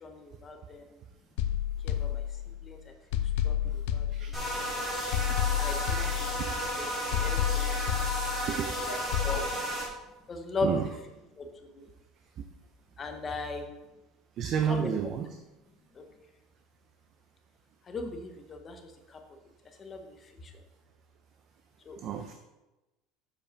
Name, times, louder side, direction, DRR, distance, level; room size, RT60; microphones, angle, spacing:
voice 1, 0.0-1.0 1.8-2.2 2.6-2.9 3.4-4.1 4.4-4.5 5.6-6.0 6.8-6.9 7.2-7.7 8.9-9.0 9.2-9.4 10.3-10.7 11.4-11.9 13.0-13.7 14.7-14.9 15.9-16.0 17.9-19.2 19.8-20.5 21.8-22.0, left 3 dB, 20° left, 5 dB, 0.8 m, -38 dB
sound 1, 1.4-2.7 3.1-4.7 5.1-6.7 7.1-8.7 9.1-9.4, left 10 dB, 85° left, 0.6 m, -30 dB
sound 2, 4.3-9.9, equal, 5° right, 2.2 m, -33 dB
voice 2, 5.8-6.2 8.5-8.8 10.6-10.9 14.4-15.4 22.0-22.3, right 8 dB, 35° right, 6 dB, 0.5 m, -31 dB
7.3 x 5.5 x 5.1 m, 1.0 s
cardioid pair, 180°, 0 cm